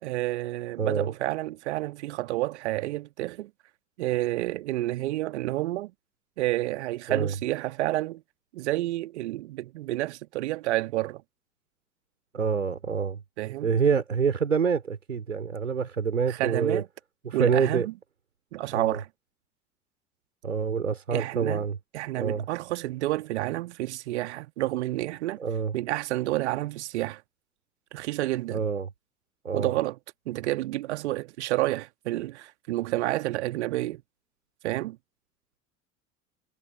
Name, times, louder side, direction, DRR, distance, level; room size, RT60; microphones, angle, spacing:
voice 1, 0.0-3.5 4.0-5.9 6.4-8.2 8.5-11.2 13.4-13.7 16.3-16.9 17.3-17.9 18.5-19.1 21.1-21.7 21.9-25.4 25.7-27.2 27.9-28.6 29.5-30.0 30.3-34.0 34.6-35.0, right 16 dB, 65° right, 2.0 m, -29 dB
voice 2, 0.8-1.1 7.1-7.3 12.3-13.2 13.6-16.8 17.2-17.9 18.7-19.0 20.4-21.8 22.2-22.5 25.4-25.8 28.5-28.9 29.4-29.7, right 6 dB, 80° right, 3.9 m, -26 dB
figure-of-eight pair, 70°, 38 cm